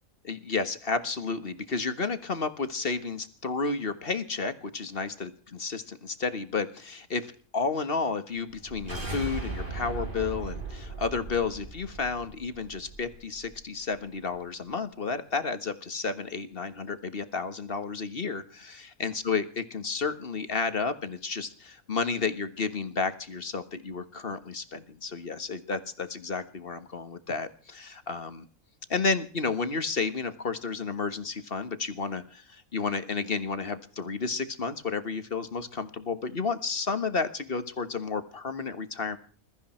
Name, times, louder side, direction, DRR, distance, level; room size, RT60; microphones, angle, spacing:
voice 1, 0.2-5.3 5.6-28.4 28.9-39.2, left 4 dB, 40° left, 11 dB, 1.6 m, -31 dB
sound 1, 8.5-13.6, right 3 dB, 35° right, 4.6 m, -38 dB
21.5 x 13.5 x 4.4 m, 0.43 s
omnidirectional pair, 1.5 m